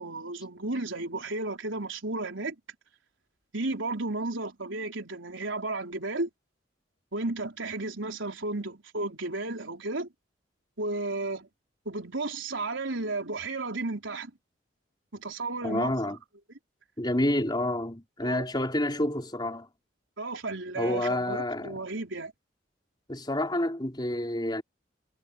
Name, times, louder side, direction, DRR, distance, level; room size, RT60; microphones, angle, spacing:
voice 1, 0.0-2.5 3.5-6.3 7.1-10.1 10.8-11.5 11.9-14.3 15.1-16.1 18.2-18.4 20.2-22.3, right 2 dB, 90° right, 4.1 m, -33 dB
voice 2, 15.6-16.2 17.0-19.7 20.8-21.8 23.1-24.6, left 1 dB, 25° left, 4.3 m, -29 dB
head